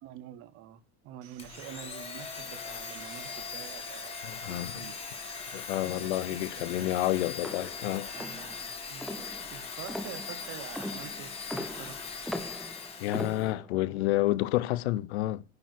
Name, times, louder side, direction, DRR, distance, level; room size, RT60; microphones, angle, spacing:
voice 1, 0.0-5.2 5.9-6.7 8.1-11.3 11.6-11.9 14.0-14.1, right 11 dB, 40° right, 0.9 m, -47 dB
Sawing, 1.2-7.2, right 12 dB, 60° right, 1.6 m, -54 dB
Domestic sounds home sounds, 1.4-13.5, left 5 dB, 20° left, 1.6 m, -40 dB
voice 2, 4.3-4.9 5.5-8.1 13.0-15.4, left 15 dB, 85° left, 0.8 m, -29 dB
sound 1, 7.4-13.9, equal, ahead, 0.4 m, -40 dB
9.7 x 4.6 x 6.2 m
supercardioid pair, 160°, 32 cm